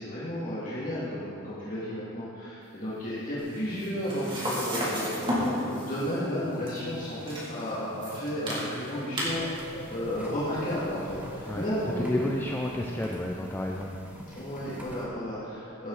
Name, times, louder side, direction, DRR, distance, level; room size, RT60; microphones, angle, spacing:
voice 1, 0.0-12.3 14.3-15.9, equal, 40° left, -10 dB, 2.4 m, -33 dB
sound 1, 2.6-13.7, equal, 70° left, 1.2 m, -49 dB
sound 2, 3.4-11.7, equal, 25° right, 2.7 m, -35 dB
sound 3, 9.3-15.0, equal, 5° right, 1.5 m, -47 dB
voice 2, 12.0-14.0, left 1 dB, 10° left, 0 dB, 0.5 m, -31 dB
16.0 x 9.0 x 4.1 m, 2.6 s
head